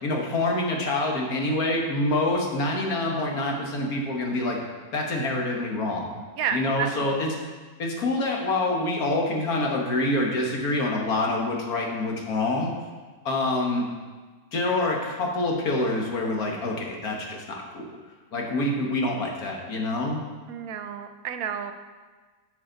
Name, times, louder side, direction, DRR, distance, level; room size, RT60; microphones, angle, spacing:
voice 1, 0.0-4.6 4.9-6.1 6.5-7.4 7.8-12.7 13.3-13.8 14.5-17.9 18.3-20.2, left 2 dB, 80° left, 0 dB, 1.8 m, -26 dB
voice 2, 6.4-7.2 20.5-21.7, right 8 dB, 75° right, 7 dB, 1.1 m, -31 dB
11.0 x 6.3 x 3.9 m, 1.4 s
omnidirectional pair, 1.6 m